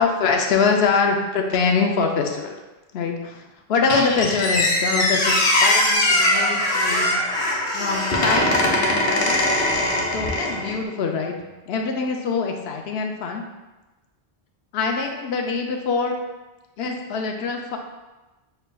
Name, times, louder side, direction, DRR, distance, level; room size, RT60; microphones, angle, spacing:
voice 1, 0.0-2.6 2.9-3.4 3.7-7.2 7.7-9.4 9.8-11.3 11.7-13.4 14.7-16.1 16.8-17.8, left 5 dB, 75° left, 3 dB, 0.8 m, -24 dB
Squeak, 3.9-10.8, left 1 dB, 50° left, 0.9 m, -21 dB
5.7 x 3.2 x 2.2 m, 1.1 s
omnidirectional pair, 1.1 m